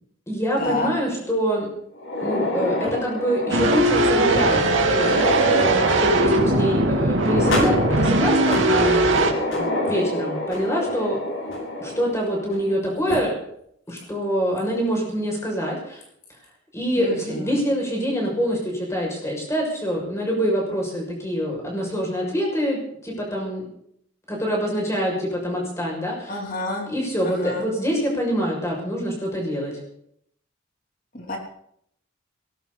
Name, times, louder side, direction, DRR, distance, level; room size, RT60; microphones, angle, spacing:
voice 1, 0.3-1.7 2.2-4.6 4.9-11.2 11.8-13.3 13.9-16.0 16.7-23.6 24.3-26.4 26.9-29.7, equal, 15° left, -1 dB, 6.7 m, -25 dB
sound 1, 1.9-12.7 13.1-13.2 14.0-14.1 14.6-14.7 16.0-16.3, left 1 dB, 80° left, 7.0 m, -28 dB
sound 2, 3.5-9.3, right 2 dB, 80° right, 2.8 m, -19 dB
voice 2, 17.0-17.5 26.3-26.9 27.2-27.7 31.1-31.4, left 2 dB, 45° left, 1 dB, 3.2 m, -29 dB
19.0 x 18.0 x 4.2 m, 0.70 s
head